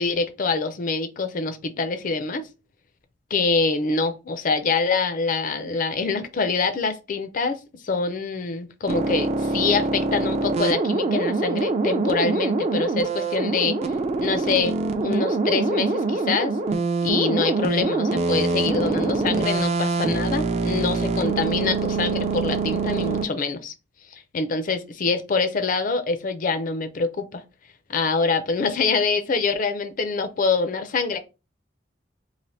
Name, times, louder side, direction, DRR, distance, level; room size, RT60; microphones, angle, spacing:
voice 1, 0.0-2.5 3.3-13.9 14.2-14.7 15.0-16.6 17.0-23.7 24.1-27.4 27.9-31.2, left 4 dB, 45° left, 0.4 m, -25 dB
sound 1, 8.9-23.2, right 3 dB, 35° right, 0.3 m, -24 dB
3.2 x 2.5 x 2.7 m
head